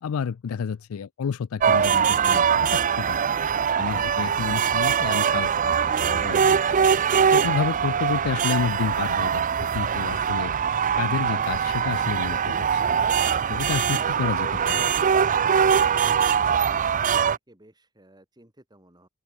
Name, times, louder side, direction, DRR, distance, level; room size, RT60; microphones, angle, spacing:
voice 1, 0.0-3.2 3.8-6.8 7.3-10.5 11.0-13.0 13.5-14.9, left 6 dB, 80° left, 0.4 m, -30 dB
sound 1, 1.6-17.4, right 7 dB, 40° right, 0.5 m, -22 dB
voice 2, 17.0-19.1, right 1 dB, 20° right, 5.6 m, -56 dB
open air
head